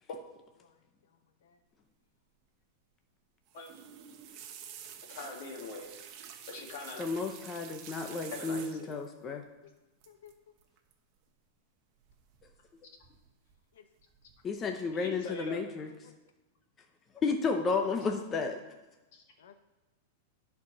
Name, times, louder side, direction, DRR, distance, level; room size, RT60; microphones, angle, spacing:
sound 1, 3.5-9.1 10.0-10.3 10.6-10.9 12.1-12.7 13.0-13.6 14.0-14.4 14.8-14.9, right 8 dB, 35° right, 1.0 m, -49 dB
voice 1, 5.1-5.9 6.4-7.0 8.3-8.9 14.9-15.6 19.1-19.2, left 3 dB, 50° left, 1 dB, 2.0 m, -42 dB
voice 2, 7.0-9.4 14.4-15.9 17.2-18.6, left 4 dB, 15° left, 4 dB, 0.6 m, -32 dB
voice 3, 9.2-9.7 10.1-10.3 13.7-13.8 16.0-16.1 19.4-19.6, left 9 dB, 90° left, 7 dB, 0.7 m, -56 dB
11.0 x 4.6 x 6.0 m, 1.1 s
supercardioid pair, 170°, 0 cm